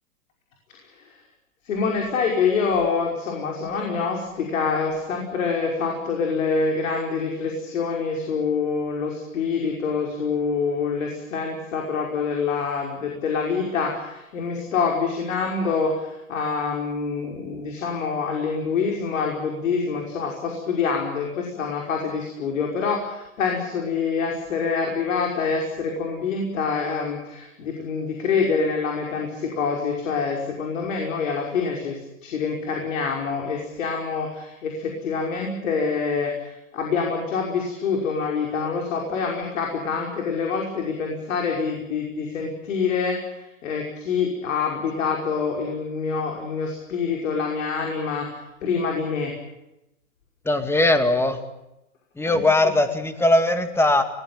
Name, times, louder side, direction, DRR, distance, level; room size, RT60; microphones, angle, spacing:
voice 1, 1.7-49.3 52.2-52.7, left 5 dB, 70° left, 0 dB, 5.6 m, -26 dB
voice 2, 50.5-51.4 52.2-54.0, left 2 dB, 5° left, 8 dB, 2.2 m, -20 dB
22.0 x 20.0 x 9.0 m, 0.90 s
hypercardioid pair, 125°, 40 cm